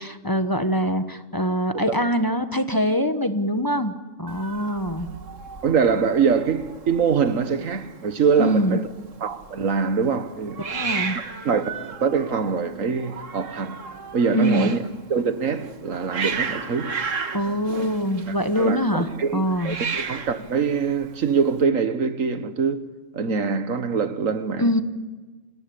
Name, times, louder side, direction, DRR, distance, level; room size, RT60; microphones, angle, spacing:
voice 1, 0.0-5.1 8.4-8.8 10.6-11.2 14.3-14.7 17.3-19.8 24.6-24.8, equal, 15° left, 1.1 m, -23 dB
Hiss, 4.3-21.6, right 5 dB, 75° right, 1.8 m, -35 dB
voice 2, 5.6-8.8 9.2-11.0 11.4-13.8 14.1-14.8 15.1-16.9 18.3-22.8 23.1-24.8, right 6 dB, 90° right, 1.8 m, -24 dB
26.5 x 19.5 x 8.6 m
omnidirectional pair, 1.3 m